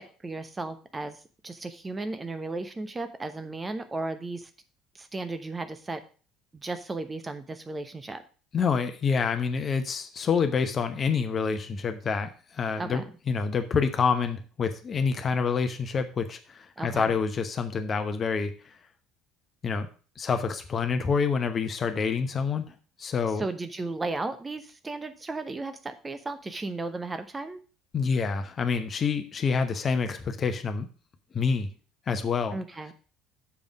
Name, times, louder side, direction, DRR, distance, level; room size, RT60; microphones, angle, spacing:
voice 1, 0.0-4.5 4.9-6.0 6.5-8.2 12.8-13.1 16.8-17.2 23.4-27.6 32.5-32.9, right 3 dB, 20° right, 9 dB, 0.9 m, -35 dB
voice 2, 8.5-18.5 19.6-19.9 20.2-23.4 27.9-30.9 31.3-31.7 32.1-32.6, left 5 dB, 35° left, 8 dB, 1.0 m, -27 dB
7.1 x 5.3 x 6.2 m, 0.38 s
figure-of-eight pair, 60°, 0 cm